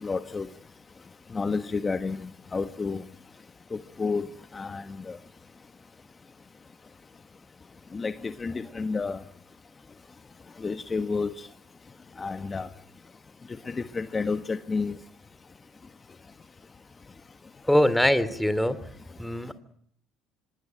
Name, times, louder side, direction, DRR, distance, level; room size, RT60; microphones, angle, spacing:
voice 1, 0.0-0.5 1.3-3.0 3.7-5.2 7.9-9.2 10.6-11.5 12.2-12.7 13.6-14.9, left 4 dB, 25° left, 10 dB, 1.4 m, -30 dB
voice 2, 17.6-18.8 19.2-19.5, left 1 dB, 5° left, 14 dB, 2.7 m, -22 dB
25.5 x 20.0 x 9.0 m, 0.66 s
supercardioid pair, 95°, 0 cm